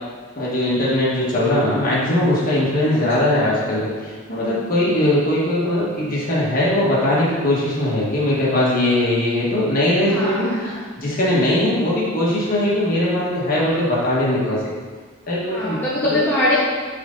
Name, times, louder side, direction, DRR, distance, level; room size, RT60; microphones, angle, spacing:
voice 1, 0.4-10.5 11.0-14.6 15.3-15.8 16.1-16.2, left 1 dB, 40° left, -7 dB, 1.9 m, -20 dB
voice 2, 10.1-10.8 15.4-16.6, left 1 dB, 10° left, -10 dB, 1.2 m, -22 dB
9.9 x 4.0 x 3.9 m, 1.5 s
head